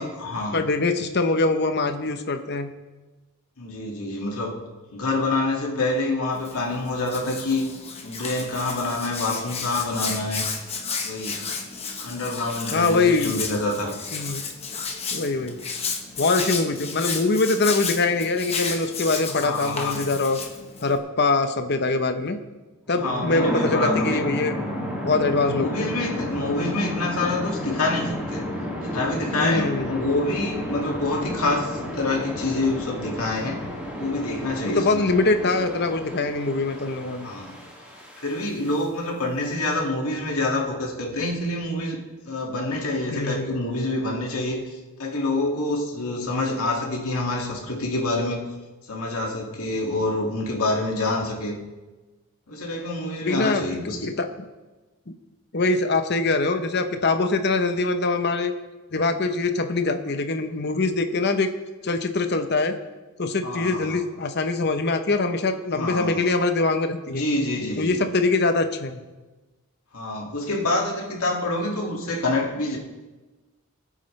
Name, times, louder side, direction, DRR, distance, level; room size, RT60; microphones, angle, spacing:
voice 1, 0.0-0.7 3.6-4.6 4.9-7.6 8.0-10.4 11.0-11.4 12.0-14.0 19.4-20.1 23.0-24.3 25.4-28.5 28.8-33.6 34.0-35.2 37.2-37.5 38.2-42.0 42.3-48.5 48.9-51.5 52.5-54.1 63.4-64.0 65.7-66.3 67.1-68.0 69.9-72.8, left 2 dB, 75° left, -1 dB, 2.2 m, -27 dB
voice 2, 0.5-2.7 12.7-13.4 14.1-14.4 15.1-15.6 16.2-20.4 20.8-22.4 22.9-24.6 25.0-25.9 29.4-29.9 34.7-37.3 43.1-43.7 53.2-53.6 54.2-54.3 55.1-55.2 55.5-58.5 58.9-61.5 61.8-62.8 63.2-67.2 67.8-69.0, left 3 dB, 50° left, 7 dB, 0.8 m, -23 dB
Hands, 6.3-21.0, left 5 dB, 25° left, 1.2 m, -32 dB
sound 1, 22.9-38.8, equal, 5° right, 2.3 m, -32 dB
19.5 x 8.8 x 3.3 m, 1.2 s
head